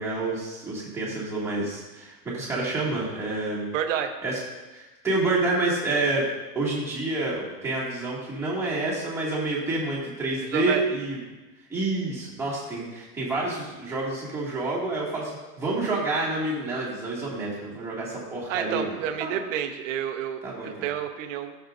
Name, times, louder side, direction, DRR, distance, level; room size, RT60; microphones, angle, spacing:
voice 1, 0.0-3.7 4.2-4.4 4.7-6.2 6.5-11.2 11.7-15.3 15.6-19.4 20.4-20.9, right 2 dB, 5° right, -8 dB, 2.1 m, -28 dB
voice 2, 3.7-4.1 10.5-10.9 18.5-21.5, right 9 dB, 50° right, 5 dB, 1.0 m, -29 dB
14.0 x 6.8 x 2.6 m, 1.2 s
supercardioid pair, 150°, 49 cm